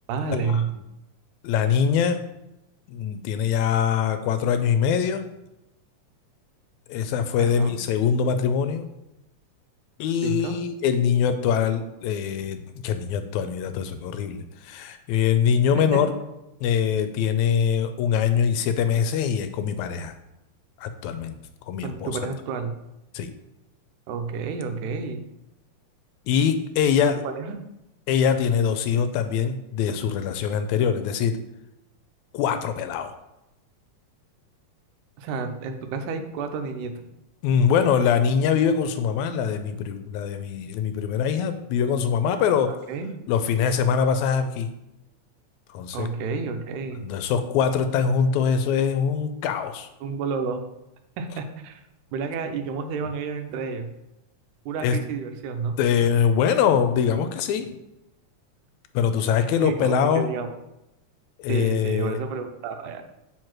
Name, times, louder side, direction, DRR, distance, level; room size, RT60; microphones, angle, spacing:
voice 1, 0.1-0.7 7.4-7.8 10.2-10.6 15.9-16.0 21.8-22.7 24.1-25.2 27.2-27.6 35.2-37.0 42.7-43.1 45.9-47.1 50.0-50.7 51.2-51.8 52.1-53.9 54.7-55.8 59.6-60.5 61.5-63.0, right 5 dB, 90° right, 6 dB, 2.2 m, -30 dB
voice 2, 1.4-2.2 2.9-5.3 6.9-8.8 10.0-16.1 16.6-20.1 20.8-21.3 21.7-22.3 23.1-23.3 26.3-27.2 28.1-31.4 32.3-33.2 37.4-42.7 43.3-44.7 45.7-46.1 47.0-49.9 54.8-55.0 55.8-57.8 58.9-60.3 61.4-62.2, left 7 dB, 80° left, 9 dB, 1.9 m, -23 dB
4.9 x 4.7 x 5.9 m, 0.89 s
omnidirectional pair, 3.4 m